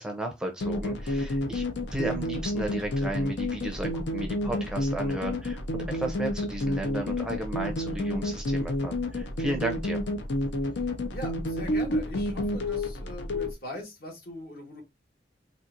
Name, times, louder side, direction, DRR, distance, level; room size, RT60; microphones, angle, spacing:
voice 1, 0.0-1.6 1.9-10.0, right 1 dB, 5° right, 0.5 m, -34 dB
sound 1, 0.6-13.5, left 1 dB, 85° left, 0.6 m, -30 dB
voice 2, 10.8-14.8, left 1 dB, 55° left, 1.4 m, -41 dB
4.2 x 2.4 x 2.5 m
head